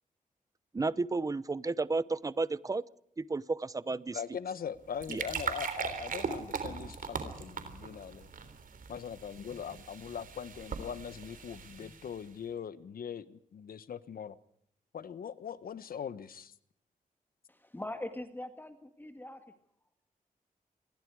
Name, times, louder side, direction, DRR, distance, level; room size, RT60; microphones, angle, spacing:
voice 1, 0.7-2.8 3.2-4.2 5.1-5.2, right 3 dB, 25° right, 0.7 m, -32 dB
voice 2, 4.1-8.3 8.9-14.4 14.9-16.5, left 7 dB, 85° left, 1.3 m, -41 dB
sound 1, 4.7-12.3, right 6 dB, 70° right, 3.7 m, -40 dB
voice 3, 17.5-19.5, left 1 dB, 15° left, 1.9 m, -42 dB
28.0 x 21.5 x 4.8 m
wide cardioid pair, 135°, 15 cm